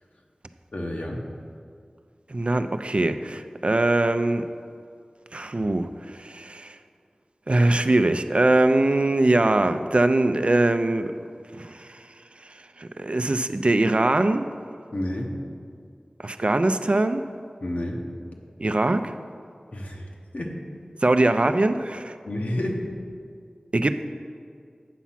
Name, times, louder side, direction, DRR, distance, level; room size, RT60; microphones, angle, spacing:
voice 1, 0.7-1.3 14.9-15.4 17.6-18.1 19.7-20.1 20.3-20.6 22.3-22.8, left 1 dB, 75° left, 0 dB, 1.1 m, -29 dB
voice 2, 2.3-4.4 5.3-6.8 7.5-11.2 11.6-11.9 12.8-14.5 16.2-17.3 18.6-19.1 21.0-22.2 23.7-24.0, right 2 dB, 50° right, 9 dB, 0.4 m, -22 dB
8.3 x 6.0 x 5.8 m, 2.3 s
wide cardioid pair, 45°, 2 cm